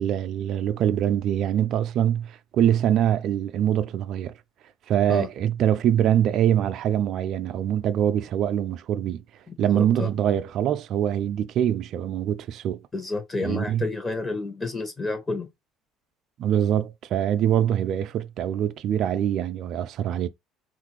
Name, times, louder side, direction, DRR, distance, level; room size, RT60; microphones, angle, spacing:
voice 1, 0.0-4.3 4.9-9.2 9.6-12.8 13.4-13.8 16.4-20.3, right 10 dB, 60° right, 0.3 m, -24 dB
voice 2, 9.5-10.1 12.9-15.5, left 3 dB, 25° left, 0.9 m, -30 dB
3.6 x 2.5 x 3.0 m
supercardioid pair, 75°, 0 cm